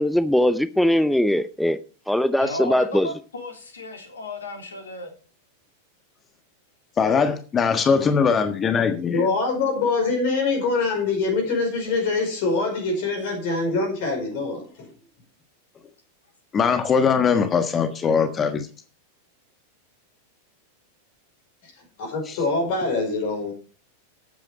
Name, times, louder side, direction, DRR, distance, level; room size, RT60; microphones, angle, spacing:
voice 1, 0.0-1.8 2.1-3.1, left 1 dB, ahead, 0.7 m, -20 dB
voice 2, 2.4-5.1 7.6-8.4, left 2 dB, 70° left, 3.4 m, -35 dB
voice 3, 7.0-9.3 16.5-18.7 22.3-22.4, left 6 dB, 25° left, 1.4 m, -21 dB
voice 4, 9.1-14.9 22.0-23.5, left 3 dB, 50° left, 5.1 m, -24 dB
12.0 x 9.0 x 5.0 m
figure-of-eight pair, 90°, 0 cm